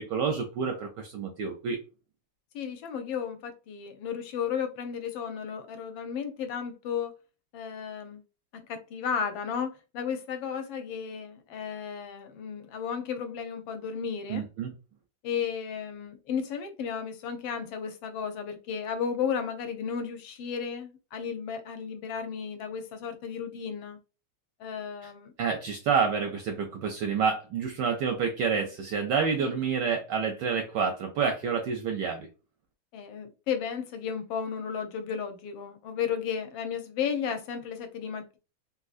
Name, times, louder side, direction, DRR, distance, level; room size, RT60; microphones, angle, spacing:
voice 1, 0.0-1.8 14.3-14.7 25.4-32.3, right 6 dB, 75° right, 1.0 m, -28 dB
voice 2, 2.5-7.1 7.5-8.2 8.7-14.5 15.2-24.0 24.6-25.3 29.4-29.6 32.9-38.4, left 7 dB, 75° left, 1.3 m, -34 dB
3.6 x 2.5 x 2.4 m
omnidirectional pair, 2.3 m